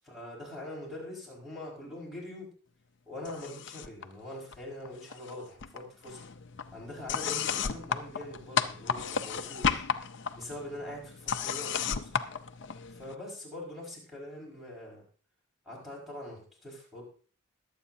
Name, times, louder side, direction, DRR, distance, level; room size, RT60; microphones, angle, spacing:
voice 1, 0.0-2.5 3.1-6.2 6.7-9.9 10.3-12.2 12.9-15.0 15.7-17.0, left 1 dB, ahead, -4 dB, 5.1 m, -43 dB
sound 1, 3.2-4.0 4.3-5.3 5.6-13.1, left 7 dB, 55° left, 0.6 m, -34 dB
22.0 x 8.4 x 2.7 m, 0.40 s
head